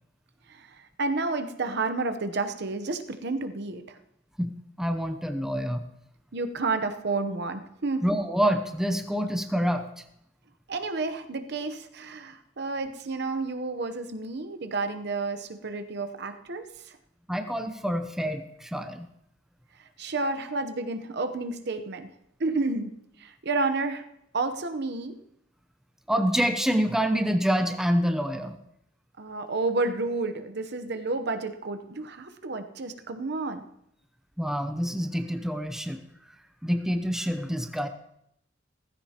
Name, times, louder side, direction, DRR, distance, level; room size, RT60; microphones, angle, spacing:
voice 1, 0.5-4.0 6.3-8.0 10.7-17.0 19.8-22.1 22.4-22.9 23.2-24.0 24.3-25.2 29.2-33.6, right 3 dB, 60° right, 9 dB, 0.9 m, -30 dB
voice 2, 4.4-5.8 8.0-9.9 17.3-19.1 26.1-28.6 34.4-36.0 36.6-37.9, equal, 5° right, 7 dB, 0.7 m, -27 dB
16.0 x 15.0 x 3.0 m, 0.76 s
head